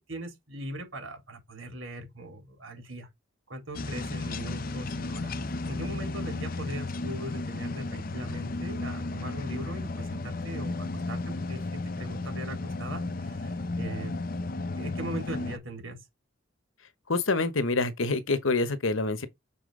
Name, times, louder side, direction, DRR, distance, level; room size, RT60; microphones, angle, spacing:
voice 1, 0.1-3.1 3.5-14.1 14.8-16.0, right 1 dB, 80° right, 3.9 m, -40 dB
sound 1, 3.7-15.6, left 2 dB, 45° left, 0.6 m, -34 dB
voice 2, 17.1-19.3, left 3 dB, 80° left, 1.1 m, -26 dB
7.1 x 4.3 x 3.8 m
head